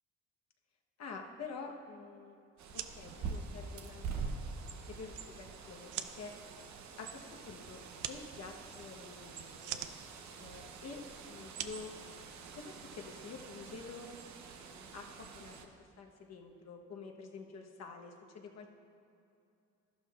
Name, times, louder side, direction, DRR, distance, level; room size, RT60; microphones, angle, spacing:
voice 1, 1.0-2.4 2.7-4.3 4.7-6.3 7.0-7.8 8.1-9.8 10.4-11.9 12.5-14.1 14.7-18.7, left 4 dB, 60° left, 2 dB, 1.2 m, -48 dB
Bird, 2.6-15.7, right 5 dB, 65° right, 0.8 m, -46 dB
sound 1, 2.6-12.8, right 11 dB, 85° right, 0.5 m, -47 dB
12.5 x 11.5 x 2.5 m, 2.7 s
cardioid pair, 90°, 30 cm